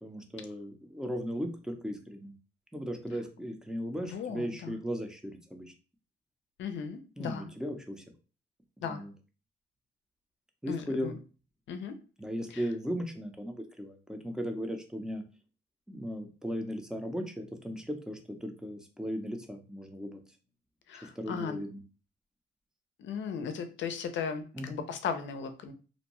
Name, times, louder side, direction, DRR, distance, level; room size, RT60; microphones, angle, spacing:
voice 1, 0.0-2.3 2.7-5.7 7.2-8.0 8.8-9.1 10.6-11.1 12.2-15.3 15.9-20.2 21.0-21.8 24.5-24.8, equal, 5° right, 4 dB, 0.6 m, -37 dB
voice 2, 4.0-4.8 6.6-7.5 8.8-9.0 10.7-11.1 11.7-12.0 12.5-12.7 20.9-21.6 23.0-25.7, left 6 dB, 70° left, 8 dB, 0.6 m, -37 dB
2.6 x 2.2 x 2.9 m, 0.36 s
cardioid pair, 90°, 20 cm